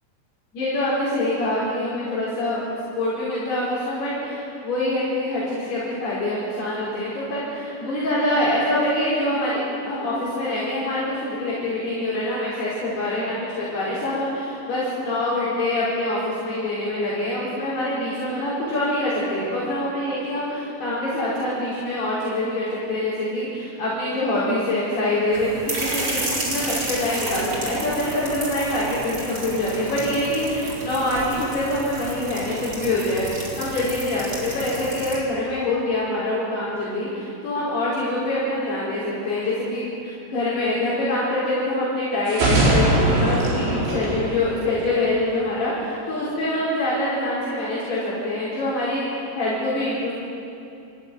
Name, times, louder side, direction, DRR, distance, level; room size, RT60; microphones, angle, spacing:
voice 1, 0.5-2.6 3.0-50.2, left 1 dB, 60° left, -9 dB, 6.9 m, -25 dB
sound 1, 25.3-35.2, right 2 dB, 25° right, 4.0 m, -31 dB
sound 2, 42.3-45.1, right 1 dB, 70° right, 7.4 m, -21 dB
29.0 x 15.0 x 9.3 m, 2.7 s
omnidirectional pair, 5.2 m